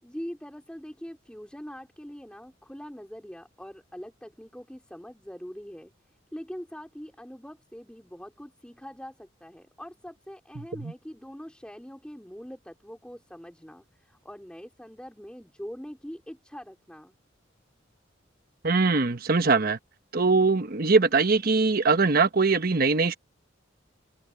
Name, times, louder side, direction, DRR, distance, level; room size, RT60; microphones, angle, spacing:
voice 1, 0.0-17.2, equal, 5° left, 3.2 m, -43 dB
voice 2, 18.6-19.8 20.1-23.1, right 4 dB, 50° right, 1.1 m, -22 dB
open air
head